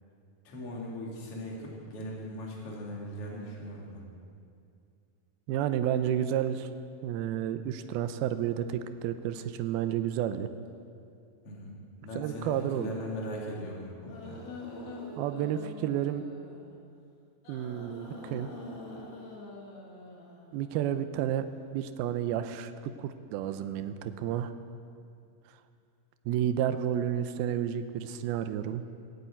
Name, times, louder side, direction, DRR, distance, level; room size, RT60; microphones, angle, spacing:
voice 1, 0.4-4.0 11.4-11.7 12.0-14.4, equal, 40° left, -3 dB, 3.1 m, -39 dB
voice 2, 5.5-6.7 7.0-10.5 12.1-12.9 15.2-16.3 17.5-18.5 20.5-21.5 21.7-24.5 26.3-28.8, right 10 dB, 85° right, 10 dB, 2.5 m, -31 dB
sound 1, 14.1-16.8 17.5-21.0, left 2 dB, 85° left, 4.1 m, -45 dB
17.0 x 8.2 x 9.0 m, 2.4 s
omnidirectional pair, 4.4 m